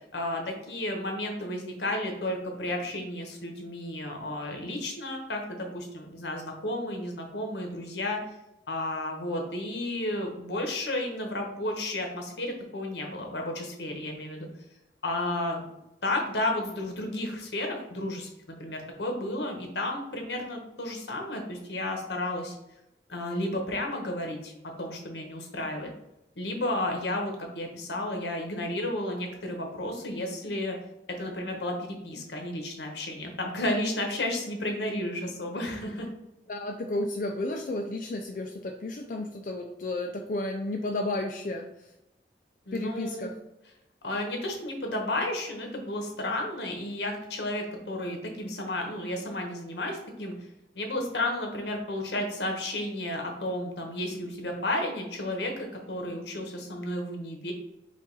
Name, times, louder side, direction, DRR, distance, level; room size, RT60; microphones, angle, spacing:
voice 1, 0.1-8.2 8.7-14.5 15.0-15.6 16.0-22.6 23.1-24.5 24.8-25.9 26.4-30.8 31.1-36.1 42.7-43.3 44.0-50.3 50.7-57.5, left 1 dB, 85° left, 2 dB, 1.1 m, -32 dB
voice 2, 36.5-41.7 42.7-43.3, left 2 dB, 50° left, 2 dB, 0.4 m, -32 dB
5.2 x 2.5 x 3.9 m, 0.88 s
head